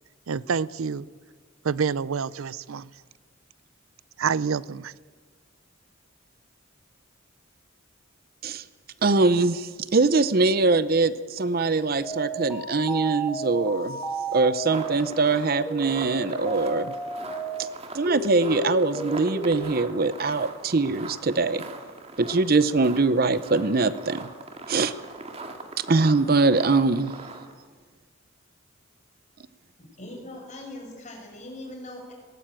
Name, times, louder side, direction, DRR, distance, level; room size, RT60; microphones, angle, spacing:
voice 1, 0.3-1.1 1.6-2.9 4.2-4.9, right 6 dB, 85° right, 20 dB, 0.5 m, -27 dB
voice 2, 9.0-14.0 14.3-16.9 17.9-21.6 22.2-24.3 24.7-24.9 25.8-27.1, right 3 dB, 45° right, 14 dB, 0.6 m, -22 dB
sound 1, 12.0-17.6 18.1-19.5, right 2 dB, ahead, 3.0 m, -33 dB
sound 2, 14.7-27.6, right 3 dB, 30° right, 2.0 m, -41 dB
voice 3, 29.8-32.1, left 1 dB, 35° left, 1 dB, 5.8 m, -41 dB
20.0 x 18.0 x 8.9 m, 1.5 s
head